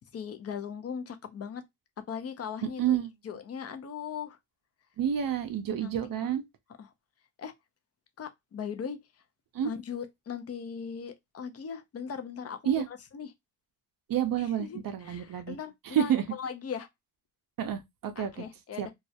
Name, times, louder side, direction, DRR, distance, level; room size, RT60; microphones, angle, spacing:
voice 1, 0.1-1.6 2.1-3.0 3.2-4.4 5.8-6.3 6.8-6.9 7.4-7.5 8.2-9.2 9.6-13.3 14.4-16.9 18.2-18.9, left 7 dB, 35° left, 0.4 m, -39 dB
voice 2, 2.8-3.1 5.0-6.4 9.5-9.7 12.7-12.8 14.1-15.6 15.9-16.2 17.6-18.4 18.8-18.9, right 9 dB, 50° right, 0.5 m, -29 dB
2.3 x 2.0 x 2.6 m
cardioid pair, 95°, 44 cm